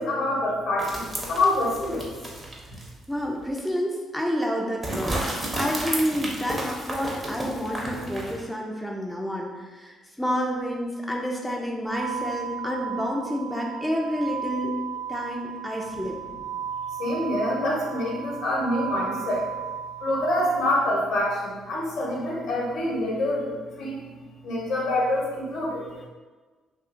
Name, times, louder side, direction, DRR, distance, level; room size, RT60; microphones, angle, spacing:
voice 1, 0.0-2.1 15.9-16.0 17.0-19.5 20.0-24.1 24.4-25.9, left 1 dB, 70° left, -4 dB, 0.9 m, -26 dB
sound 1, 0.8-3.0 3.4-3.5 4.8-8.5, right 1 dB, 25° right, 0.8 m, -32 dB
voice 2, 3.1-14.7 15.1-16.2, equal, 5° left, -1 dB, 0.5 m, -29 dB
sound 2, 11.9-20.9, right 8 dB, 50° right, 0.6 m, -35 dB
2.6 x 2.5 x 2.5 m, 1.3 s
hypercardioid pair, 50°, 0 cm